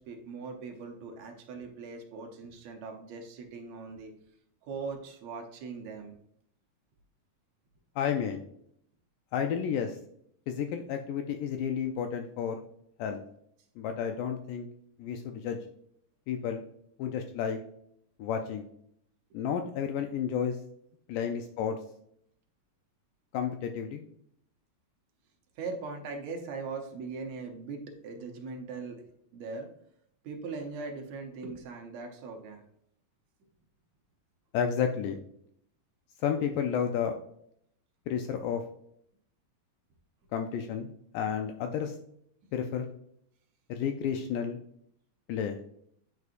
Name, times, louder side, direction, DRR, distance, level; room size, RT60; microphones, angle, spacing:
voice 1, 0.0-4.1 4.6-6.1 25.5-29.0 29.3-29.7 30.2-32.6, right 4 dB, 70° right, 2 dB, 1.7 m, -40 dB
voice 2, 8.0-8.4 9.3-10.0 10.5-12.6 13.0-13.2 13.8-14.7 15.0-15.6 16.3-16.6 17.0-17.6 18.2-18.7 19.3-20.6 21.1-21.8 23.3-24.0 34.5-35.2 36.2-37.2 38.1-38.6 40.3-42.0 42.5-42.9 43.7-44.6 45.3-45.6, left 7 dB, 85° left, 5 dB, 1.9 m, -31 dB
9.3 x 4.8 x 2.5 m, 0.70 s
omnidirectional pair, 4.2 m